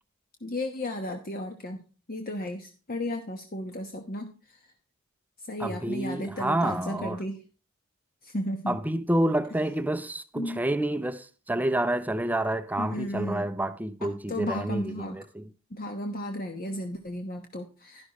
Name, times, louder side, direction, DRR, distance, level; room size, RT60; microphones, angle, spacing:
voice 1, 0.4-4.6 5.5-7.4 8.2-8.8 10.3-10.6 12.8-13.5 14.0-15.2 15.7-18.1, left 1 dB, 45° left, 1.1 m, -34 dB
voice 2, 5.6-7.2 8.7-15.5, right 1 dB, 10° right, 0.5 m, -29 dB
11.5 x 11.5 x 3.0 m
head